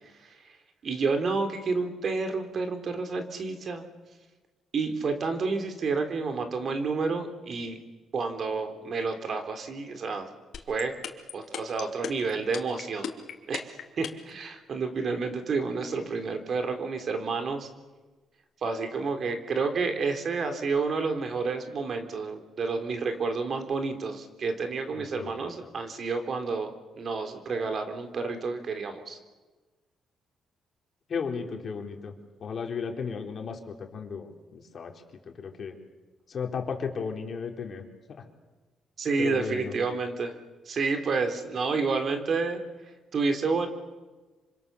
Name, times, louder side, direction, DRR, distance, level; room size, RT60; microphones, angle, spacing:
voice 1, 0.8-3.8 4.7-7.8 8.1-10.3 10.7-11.0 11.3-13.1 13.5-17.7 18.6-29.2 39.0-40.3 40.7-42.6 43.1-43.7, right 4 dB, 50° right, 6 dB, 3.8 m, -30 dB
sound 1, 10.5-14.3, left 9 dB, 70° left, 3.0 m, -35 dB
voice 2, 24.9-25.7 31.1-32.1 32.4-34.9 35.2-35.8 36.3-37.8 39.2-39.8, left 5 dB, 50° left, 3 dB, 4.1 m, -35 dB
26.5 x 26.0 x 7.1 m, 1.3 s
cardioid pair, 90°, 0 cm